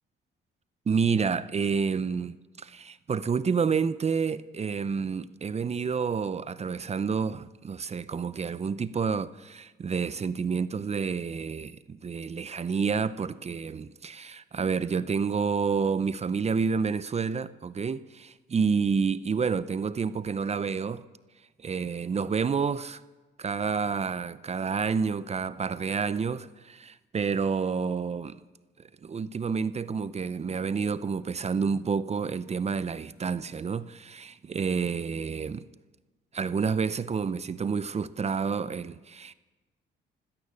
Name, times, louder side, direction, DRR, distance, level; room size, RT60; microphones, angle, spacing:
voice 1, 0.9-21.0 21.6-23.0 23.4-28.4 28.8-35.6 36.3-39.3, right 5 dB, 35° right, 0.6 m, -29 dB
16.0 x 13.0 x 6.9 m
cardioid pair, 90°, 20 cm